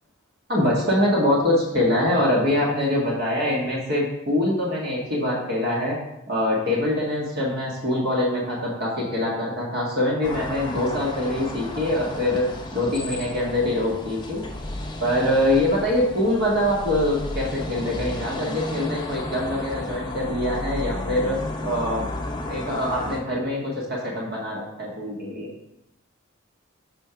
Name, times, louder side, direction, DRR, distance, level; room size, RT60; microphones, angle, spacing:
voice 1, 0.5-6.0 6.3-12.4 12.7-14.4 15.0-21.4 21.6-22.1 22.5-25.5, left 1 dB, 50° right, -4 dB, 1.5 m, -24 dB
sound 1, 10.2-23.2, left 1 dB, 20° left, 0.6 m, -33 dB
6.3 x 4.4 x 5.7 m, 0.85 s
head